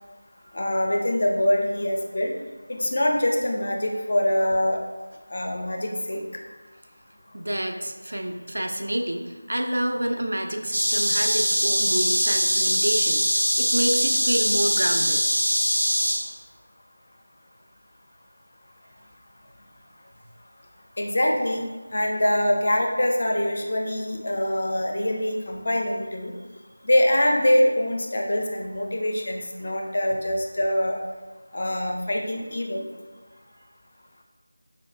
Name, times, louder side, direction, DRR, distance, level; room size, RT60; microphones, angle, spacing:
voice 1, 0.5-2.3 2.7-4.8 5.3-6.2 21.0-21.6 21.9-26.3 26.8-31.0 31.5-32.8, left 1 dB, 45° left, 1 dB, 0.4 m, -24 dB
voice 2, 7.3-15.2, right 1 dB, 70° right, 4 dB, 0.3 m, -28 dB
sound 1, 10.7-16.1, equal, 90° right, 1.0 m, -22 dB
4.5 x 2.3 x 2.4 m, 1.3 s
figure-of-eight pair, 170°, 0 cm